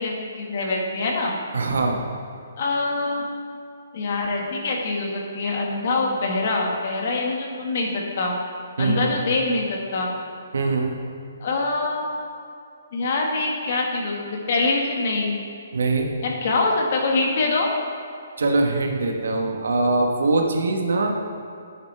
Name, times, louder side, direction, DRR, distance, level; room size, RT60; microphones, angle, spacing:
voice 1, 0.0-1.4 2.6-3.2 3.9-8.4 8.8-10.2 11.4-12.1 12.9-15.4 16.2-17.7, left 3 dB, 50° left, 0 dB, 1.7 m, -24 dB
voice 2, 1.5-2.0 8.8-9.2 10.5-10.9 15.7-16.1 18.4-21.3, right 3 dB, 80° right, 2 dB, 1.3 m, -22 dB
10.0 x 8.9 x 3.4 m, 2.5 s
hypercardioid pair, 160°, 0 cm